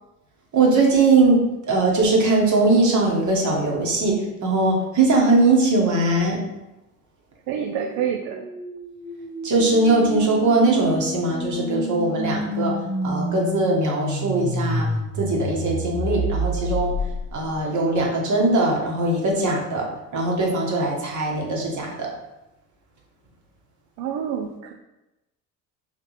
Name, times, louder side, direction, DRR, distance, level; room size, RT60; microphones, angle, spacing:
voice 1, 0.5-1.4 1.7-4.1 4.4-6.4 9.4-12.7 13.0-14.9 15.2-16.9 17.3-19.8 20.1-22.1, right 2 dB, 40° right, -1 dB, 1.3 m, -20 dB
sound 1, 7.5-17.6, equal, ahead, 0.9 m, -29 dB
voice 2, 7.5-8.5 24.0-24.7, right 8 dB, 60° right, 3 dB, 0.5 m, -27 dB
4.1 x 2.8 x 3.1 m, 0.98 s
hypercardioid pair, 65°, 43 cm